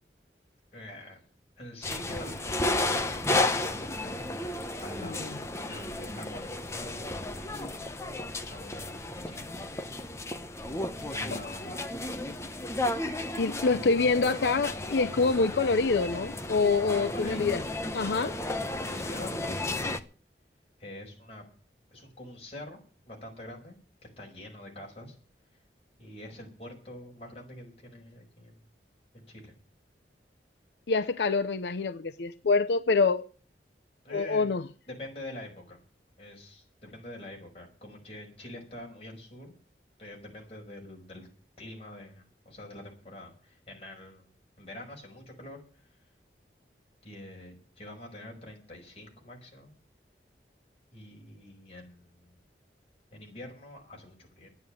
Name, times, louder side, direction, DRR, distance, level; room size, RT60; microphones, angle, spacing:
voice 1, 0.7-1.2 1.6-4.2 4.8-5.2 5.6-6.4 6.7-7.2 7.5-7.9 8.4-9.0 9.3-9.9 10.9-11.8 13.7-14.4 17.0-17.6 18.8-20.0 20.8-21.4 21.9-22.8 23.1-23.8 24.2-25.2 26.0-28.6 29.1-29.5 34.0-34.5 34.9-35.8 36.2-39.5 40.0-41.3 41.6-46.0 47.0-49.7 50.9-52.4 53.1-54.5, left 1 dB, 35° left, 5.4 m, -45 dB
sound 1, 1.8-20.0, left 2 dB, 15° left, 0.8 m, -33 dB
voice 2, 13.4-17.6 17.9-18.4 30.9-33.3 34.1-34.7, left 4 dB, 80° left, 0.6 m, -26 dB
11.0 x 9.6 x 8.9 m
head